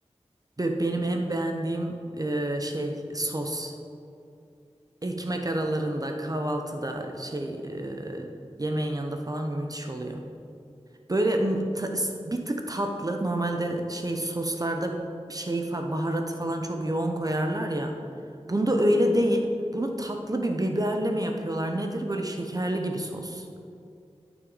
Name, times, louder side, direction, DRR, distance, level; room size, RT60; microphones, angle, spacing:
voice 1, 0.6-3.7 5.0-8.3 8.6-10.2 11.1-18.0 18.5-23.5, right 1 dB, 30° right, 4 dB, 0.7 m, -28 dB
13.0 x 6.0 x 4.0 m, 2.5 s
wide cardioid pair, 60°, 12 cm